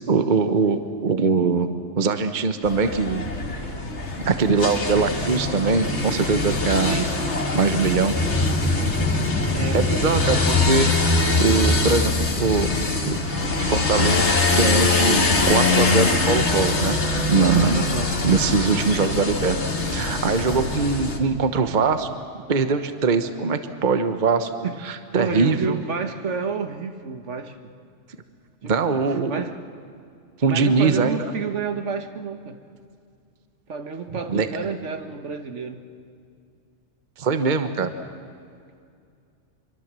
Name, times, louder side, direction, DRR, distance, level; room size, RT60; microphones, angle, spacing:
voice 1, 0.1-3.3 4.2-7.0 7.5-8.2 9.7-10.9 11.4-12.7 13.0-13.2 13.6-14.2 14.5-17.0 17.3-17.9 18.2-19.6 19.9-22.1 22.5-24.5 24.8-25.7 28.6-29.4 30.4-31.2 34.3-34.5 37.2-37.9, right 4 dB, 40° right, 9 dB, 1.1 m, -22 dB
sound 1, 2.6-21.2, left 3 dB, 65° left, 2.1 m, -23 dB
voice 2, 6.8-7.1 9.5-9.8 17.7-18.1 24.6-24.8 25.1-27.5 28.6-29.0 29.3-29.6 30.5-32.6 33.7-35.8, right 5 dB, 70° right, 7 dB, 1.6 m, -29 dB
sound 2, 8.1-13.2, left 1 dB, 10° left, 0.8 m, -24 dB
25.5 x 24.0 x 7.5 m, 2.3 s
omnidirectional pair, 1.3 m